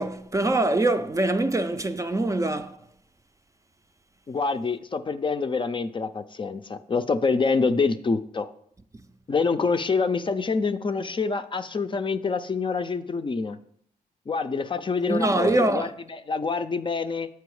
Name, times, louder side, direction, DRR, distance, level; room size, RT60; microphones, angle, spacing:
voice 1, 0.0-2.8 15.1-15.9, right 2 dB, 20° right, 0.5 m, -24 dB
voice 2, 4.3-8.5 9.3-13.6 14.3-17.3, left 4 dB, 30° left, 0.5 m, -26 dB
6.9 x 4.7 x 4.8 m
cardioid pair, 65°, 16 cm